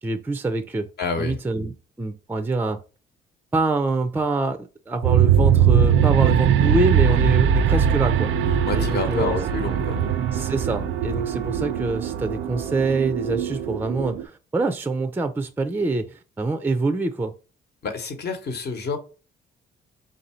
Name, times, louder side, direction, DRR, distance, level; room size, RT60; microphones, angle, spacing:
voice 1, 0.0-0.9 1.2-2.8 3.5-8.3 8.7-9.4 10.3-17.3, right 3 dB, 10° right, 0.4 m, -25 dB
voice 2, 1.0-1.4 8.6-10.0 17.8-19.0, left 4 dB, 55° left, 1.0 m, -28 dB
sound 1, 5.0-14.2, right 8 dB, 80° right, 0.4 m, -21 dB
3.6 x 2.6 x 4.2 m
cardioid pair, 90°, 20 cm